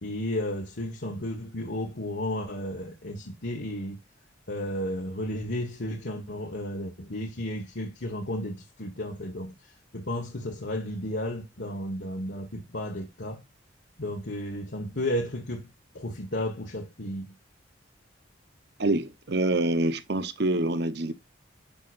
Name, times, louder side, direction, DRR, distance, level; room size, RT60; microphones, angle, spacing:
voice 1, 0.0-4.0 4.5-13.4 14.0-15.7 15.9-17.3, left 1 dB, 60° left, 1.4 m, -33 dB
voice 2, 18.8-21.1, right 2 dB, 55° right, 0.9 m, -26 dB
9.2 x 5.8 x 2.5 m
head